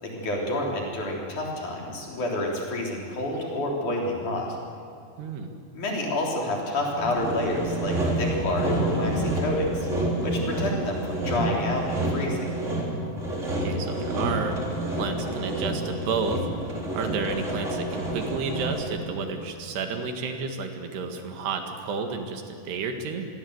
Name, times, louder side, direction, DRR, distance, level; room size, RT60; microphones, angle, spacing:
voice 1, 0.0-4.5 5.7-9.9 10.2-12.5, left 1 dB, 50° left, -1 dB, 4.8 m, -29 dB
voice 2, 5.2-5.5 13.6-14.6 14.9-16.5 16.9-23.3, right 5 dB, 85° right, 4 dB, 4.0 m, -31 dB
Sawing, 7.0-19.0, right 1 dB, 20° right, 4.0 m, -28 dB
25.5 x 22.5 x 8.0 m, 2.5 s
omnidirectional pair, 4.6 m